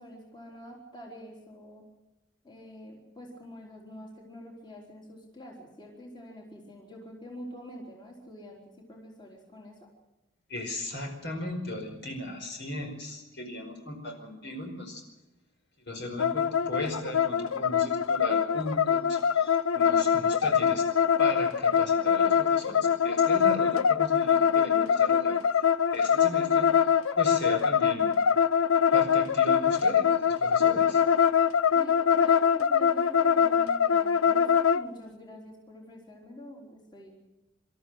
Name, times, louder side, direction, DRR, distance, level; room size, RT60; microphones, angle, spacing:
voice 1, 0.0-1.8 2.4-9.9 31.7-37.2, left 1 dB, 20° left, -1 dB, 3.8 m, -46 dB
voice 2, 10.5-15.0 15.8-20.9 21.2-25.7 25.9-28.1 28.9-31.0, left 1 dB, 55° left, 3 dB, 5.0 m, -37 dB
sound 1, 16.2-34.8, left 7 dB, 90° left, 0.7 m, -23 dB
26.5 x 13.5 x 7.9 m, 1.1 s
head